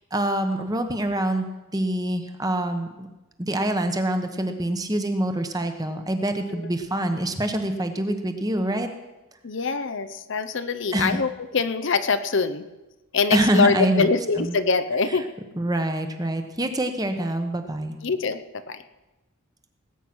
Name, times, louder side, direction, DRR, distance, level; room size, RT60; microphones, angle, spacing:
voice 1, 0.1-1.5 1.7-3.1 3.4-8.9 10.9-11.2 13.3-14.1 14.4-14.6 15.6-18.0, right 1 dB, 15° right, 7 dB, 1.1 m, -25 dB
voice 2, 9.4-12.6 13.1-15.3 18.0-18.8, left 4 dB, 55° left, 11 dB, 0.7 m, -24 dB
18.5 x 9.0 x 6.1 m, 1.0 s
head